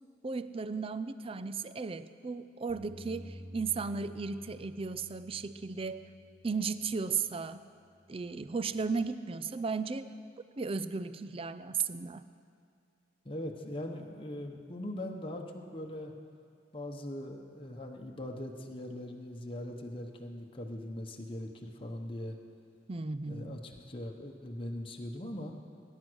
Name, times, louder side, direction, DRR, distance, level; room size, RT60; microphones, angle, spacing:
voice 1, 0.2-6.1 6.4-7.7 8.1-10.1 10.6-12.3 22.9-23.6, right 5 dB, 30° right, 13 dB, 0.4 m, -35 dB
Bass guitar, 2.7-7.2 7.8-8.9, equal, 5° left, 2.9 m, -52 dB
voice 2, 13.2-16.1 16.7-22.4 23.3-25.6, left 1 dB, 30° left, 1 dB, 1.0 m, -41 dB
19.0 x 10.0 x 6.3 m, 2.3 s
head